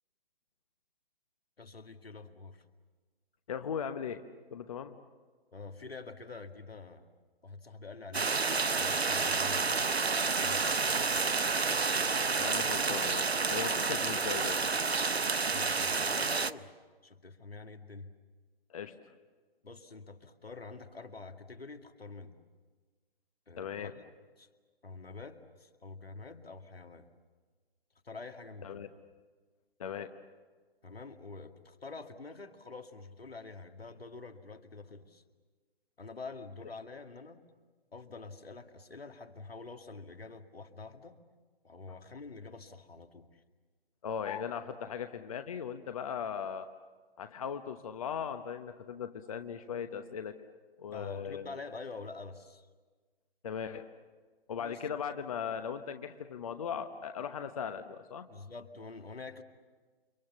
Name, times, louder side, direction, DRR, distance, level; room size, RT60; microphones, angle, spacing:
voice 1, 1.6-2.6 5.5-7.1 7.4-8.4 8.7-9.9 10.3-10.8 15.5-16.7 17.0-18.1 19.6-22.4 23.5-24.0 24.4-24.5 24.8-27.1 28.0-28.9 30.8-35.2 36.0-37.4 37.9-41.2 41.6-43.4 50.9-52.7 54.6-54.8 58.3-59.4, left 3 dB, 70° left, 6 dB, 2.1 m, -46 dB
voice 2, 3.5-4.2 4.5-4.9 12.4-14.6 18.7-18.9 23.6-23.9 28.6-28.9 29.8-30.1 44.0-46.7 47.2-50.3 50.8-51.6 53.4-53.9 54.5-58.3, left 7 dB, 35° left, 9 dB, 0.9 m, -38 dB
sound 1, 8.1-16.5, right 4 dB, 85° right, 0.8 m, -29 dB
29.5 x 25.0 x 7.1 m, 1.4 s
figure-of-eight pair, 135°, 31 cm